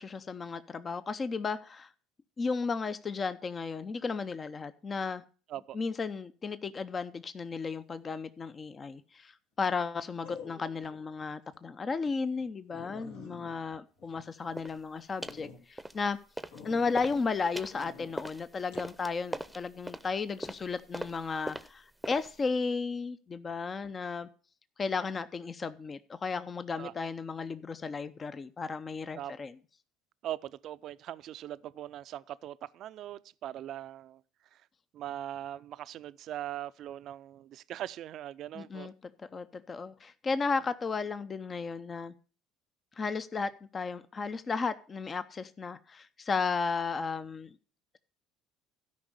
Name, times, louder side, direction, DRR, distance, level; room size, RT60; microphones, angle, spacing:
voice 1, 0.0-1.9 2.4-5.2 5.7-16.2 16.6-24.3 24.8-29.5 38.5-42.1 43.0-47.6, left 4 dB, 35° left, 0.6 m, -34 dB
sound 1, 8.6-9.0 10.2-11.0 11.4-11.6 12.0-12.1 12.4-12.5 12.7-14.8 15.2-15.6 16.5-17.3 17.7-18.1 18.7-18.9, left 5 dB, 75° left, 2.0 m, -48 dB
sound 2, 14.5-14.8 15.2-15.5 15.8-16.6 16.9-22.4, right 1 dB, 5° right, 0.8 m, -41 dB
voice 2, 30.2-34.2 34.5-34.6 34.9-38.9, right 12 dB, 55° right, 0.4 m, -41 dB
12.5 x 5.3 x 6.5 m
hypercardioid pair, 65°, 0 cm